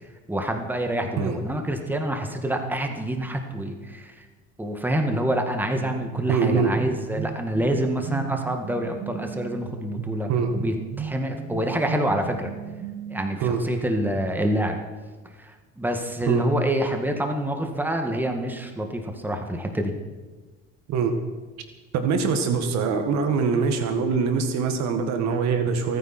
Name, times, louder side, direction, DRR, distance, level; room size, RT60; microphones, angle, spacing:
voice 1, 0.3-4.3 4.6-12.5 13.1-14.8 15.4-19.9, right 1 dB, 5° right, 4 dB, 2.1 m, -27 dB
sound 1, 5.8-13.4, right 7 dB, 50° right, 1.4 m, -36 dB
voice 2, 6.3-6.8 10.3-10.6 13.4-13.7 16.3-16.5 20.9-21.2 21.9-26.0, right 5 dB, 65° right, 6 dB, 1.9 m, -23 dB
27.0 x 9.7 x 4.5 m, 1.3 s
supercardioid pair, 85°, 30 cm